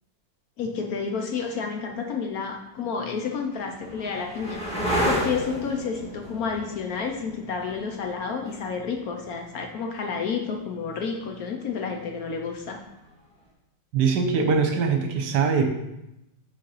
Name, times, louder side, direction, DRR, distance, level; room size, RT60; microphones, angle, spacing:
voice 1, 0.6-12.8, left 5 dB, 65° left, 2 dB, 1.0 m, -30 dB
sound 1, 2.6-10.2 12.5-13.1, equal, 5° left, 1.3 m, -32 dB
voice 2, 13.9-15.7, right 5 dB, 65° right, 4 dB, 1.4 m, -22 dB
6.4 x 4.1 x 5.4 m, 0.89 s
omnidirectional pair, 2.0 m